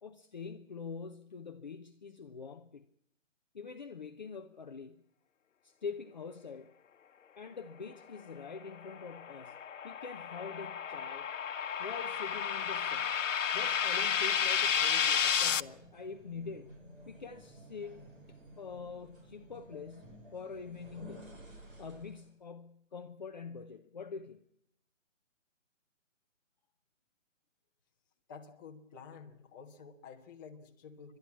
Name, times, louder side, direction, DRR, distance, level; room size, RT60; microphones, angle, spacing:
voice 1, 0.0-2.8 3.5-5.0 5.6-6.7 7.4-9.6 9.8-11.3 11.8-13.2 13.5-16.7 17.1-21.4 21.8-24.4, left 5 dB, 35° left, 0.8 m, -45 dB
sound 1, 8.8-15.6, left 7 dB, 70° left, 0.8 m, -32 dB
sound 2, 14.8-22.3, equal, 45° right, 5.8 m, -54 dB
voice 2, 28.3-31.2, left 6 dB, 15° left, 1.4 m, -51 dB
29.5 x 12.0 x 8.6 m
hypercardioid pair, 170°, 38 cm